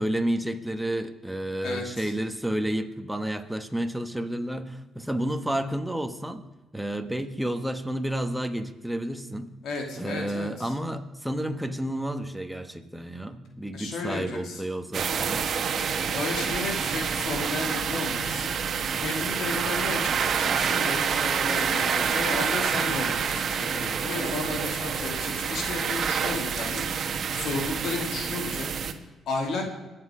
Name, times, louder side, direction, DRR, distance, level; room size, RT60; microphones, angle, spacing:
voice 1, 0.0-6.4 6.7-9.5 9.9-15.4, right 1 dB, 5° right, 7 dB, 1.3 m, -30 dB
voice 2, 1.6-2.1 9.6-10.7 13.7-14.7 16.0-18.5 19.0-20.1 20.4-26.8 27.3-28.7 29.3-29.7, left 3 dB, 75° left, 2 dB, 2.5 m, -33 dB
sound 1, 14.9-28.9, right 6 dB, 55° right, 1.2 m, -27 dB
22.5 x 7.9 x 5.0 m, 1.1 s
cardioid pair, 90°, 0 cm